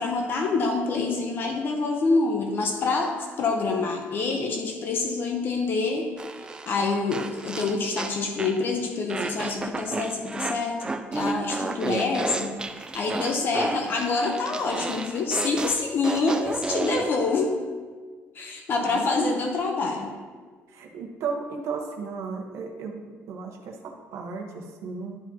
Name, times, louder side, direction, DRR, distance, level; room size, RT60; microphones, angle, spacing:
voice 1, 0.0-6.1 6.7-17.5 18.3-20.1, left 3 dB, 45° left, 2 dB, 0.7 m, -26 dB
sound 1, 6.2-8.6 9.1-17.1, right 3 dB, 15° right, 0.3 m, -32 dB
voice 2, 18.8-19.4 20.7-23.0 23.3-25.2, right 5 dB, 70° right, 2 dB, 1.0 m, -34 dB
11.5 x 4.9 x 2.8 m, 1.5 s
cardioid pair, 150°, 5 cm